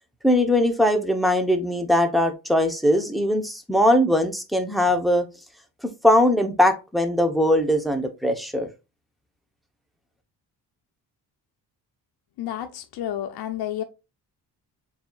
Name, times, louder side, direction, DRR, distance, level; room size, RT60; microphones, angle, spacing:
voice 1, 0.2-5.3 6.0-8.7, left 1 dB, ahead, 0.8 m, -20 dB
voice 2, 12.4-13.8, left 11 dB, 75° left, 0.6 m, -30 dB
7.0 x 2.8 x 2.3 m
cardioid pair, 120°, 39 cm